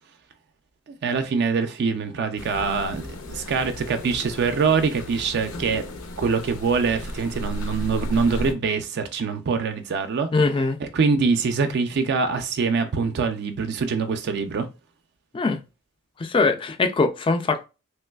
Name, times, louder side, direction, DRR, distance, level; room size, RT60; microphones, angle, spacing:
voice 1, 0.9-5.8 6.2-10.3 10.8-14.7, right 5 dB, 50° right, 0.4 m, -24 dB
sound 1, 2.4-8.5, left 1 dB, 75° left, 0.6 m, -34 dB
voice 2, 10.3-10.8 15.3-15.6 16.2-17.7, left 3 dB, 25° left, 0.3 m, -22 dB
3.2 x 3.0 x 2.2 m
head